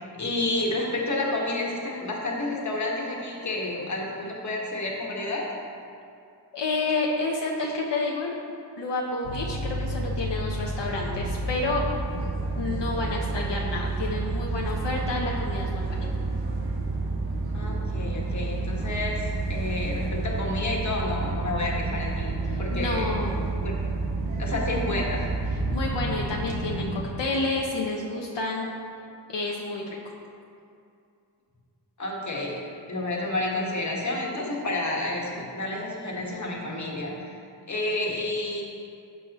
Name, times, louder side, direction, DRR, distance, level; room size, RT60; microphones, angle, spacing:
voice 1, 0.2-5.5 17.5-23.0 23.6-23.7 24.4-25.3 32.0-32.6 32.9-37.4 37.7-38.6, left 2 dB, 40° left, -2 dB, 1.6 m, -30 dB
voice 2, 6.5-8.3 8.8-11.8 12.6-16.1 22.7-23.3 25.7-28.7 29.3-30.0, left 3 dB, 75° left, -2 dB, 1.0 m, -29 dB
sound 1, 9.2-27.0, right 3 dB, 85° right, 1.3 m, -30 dB
12.5 x 7.9 x 3.0 m, 2.5 s
wide cardioid pair, 125°, 43 cm